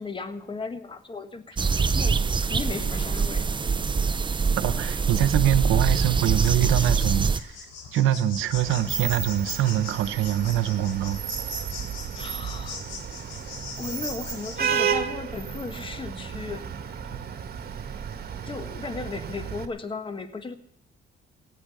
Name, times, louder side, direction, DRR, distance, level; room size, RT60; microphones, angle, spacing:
voice 1, 0.0-3.5 12.1-12.8 13.2-13.4 13.8-16.6 18.4-20.6, left 4 dB, 25° left, 1.5 m, -36 dB
sound 1, 1.6-7.4, right 5 dB, 25° right, 0.6 m, -24 dB
voice 2, 4.6-7.5 7.9-11.2 17.1-17.3, right 12 dB, 90° right, 1.0 m, -24 dB
sound 2, 6.2-14.7, left 4 dB, 75° left, 3.7 m, -40 dB
Vehicle horn car horn honking / Traffic noise roadway noise, 8.5-19.7, right 8 dB, 50° right, 1.8 m, -33 dB
16.5 x 9.9 x 7.0 m
cardioid pair, 90°, 20 cm